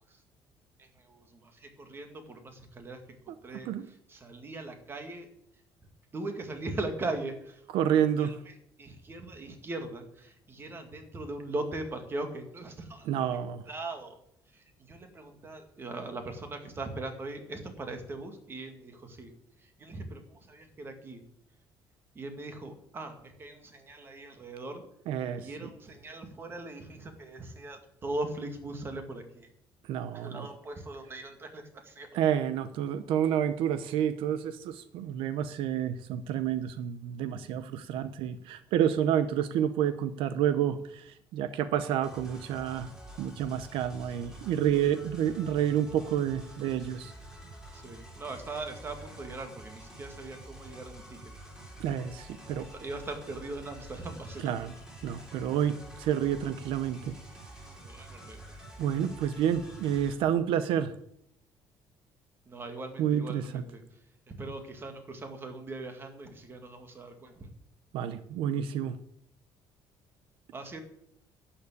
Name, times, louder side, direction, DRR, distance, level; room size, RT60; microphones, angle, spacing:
voice 1, 0.8-3.7 4.1-5.3 6.1-8.3 8.8-13.3 13.7-14.2 14.5-19.3 19.8-21.2 22.2-24.8 25.4-29.5 30.1-32.2 37.9-38.0 44.2-44.3 47.7-51.2 52.6-54.5 57.8-58.4 62.5-63.8 64.3-67.5 70.5-70.8, right 2 dB, 25° right, 6 dB, 2.1 m, -40 dB
voice 2, 7.7-8.4 13.0-13.6 25.1-25.7 29.8-30.5 32.1-42.9 43.2-47.1 51.8-52.7 54.4-54.7 55.0-57.1 58.8-60.9 63.0-63.6 67.9-69.0, right 9 dB, 80° right, 12 dB, 0.8 m, -29 dB
sound 1, 42.0-60.2, right 1 dB, 5° right, 3.4 m, -48 dB
12.0 x 7.2 x 8.4 m, 0.72 s
cardioid pair, 155°, 9 cm